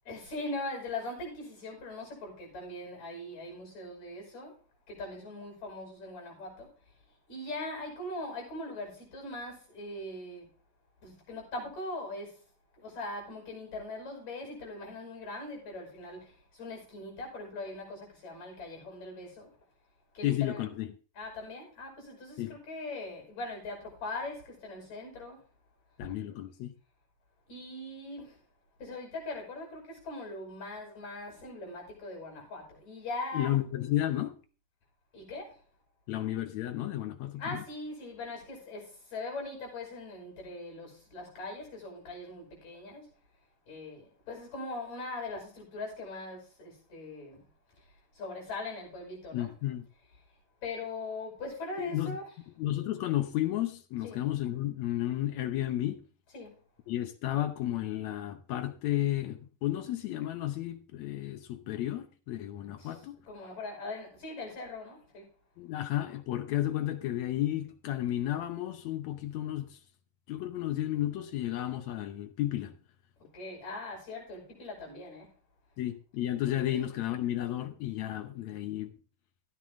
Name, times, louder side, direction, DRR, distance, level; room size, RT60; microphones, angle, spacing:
voice 1, 0.1-4.6 4.9-6.7 7.3-10.5 11.0-12.4 12.8-19.5 20.1-20.6 21.2-25.4 27.5-28.4 28.8-33.6 35.1-35.6 37.4-43.1 43.7-47.5 47.8-47.9 48.1-49.5 50.6-52.3 54.0-54.2 56.3-56.6 62.8-65.3 73.2-75.3 76.7-76.8, left 2 dB, 55° left, 7.2 m, -41 dB
voice 2, 20.2-20.9 22.4-22.5 26.0-26.7 33.3-34.3 36.1-37.6 49.3-49.9 51.8-52.2 52.6-56.0 56.9-63.2 65.6-69.8 70.3-72.7 75.8-78.9, left 13 dB, 70° left, 1.7 m, -32 dB
14.5 x 9.3 x 3.7 m
omnidirectional pair, 4.0 m